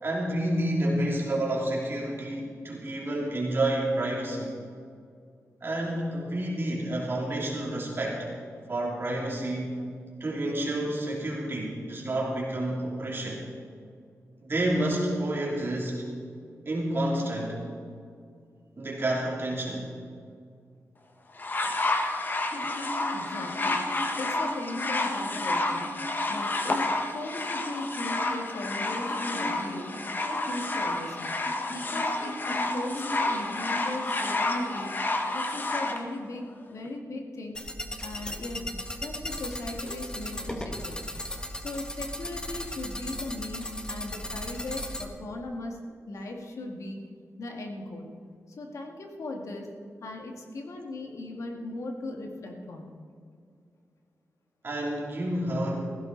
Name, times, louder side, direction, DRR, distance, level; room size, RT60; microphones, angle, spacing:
voice 1, 0.0-4.5 5.6-8.3 8.7-9.7 10.2-13.4 14.4-16.0 16.6-17.6 18.8-19.9 54.6-55.7, right 1 dB, 45° right, -3 dB, 3.2 m, -29 dB
sound 1, 21.4-36.0 36.9-37.0, left 2 dB, 35° left, 1.4 m, -30 dB
voice 2, 23.1-25.8 26.3-26.9 27.1-29.9 30.2-31.3 31.7-34.9 35.3-37.6 38.0-41.0 41.6-47.0 47.4-48.1 48.5-49.7 50.0-52.9, left 2 dB, 70° left, 2 dB, 2.2 m, -38 dB
sound 2, 37.5-45.0, left 1 dB, 15° left, 1.4 m, -36 dB
16.0 x 15.5 x 4.1 m, 2.2 s
wide cardioid pair, 95°, 6 cm